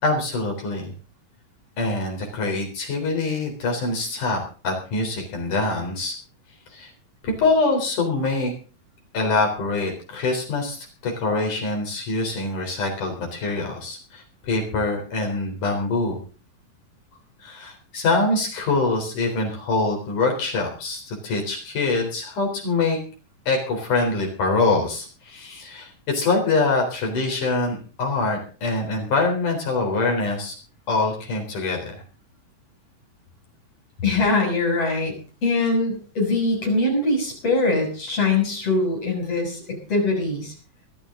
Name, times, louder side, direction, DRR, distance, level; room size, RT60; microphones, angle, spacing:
voice 1, 0.0-0.9 1.8-6.2 6.7-6.9 7.2-8.5 9.1-16.2 17.4-23.0 23.5-30.6 30.9-32.0, left 3 dB, 70° left, 2 dB, 5.4 m, -24 dB
voice 2, 34.0-35.1 35.4-40.5, left 2 dB, 45° left, 1 dB, 7.4 m, -22 dB
22.0 x 13.0 x 3.8 m, 0.38 s
omnidirectional pair, 3.8 m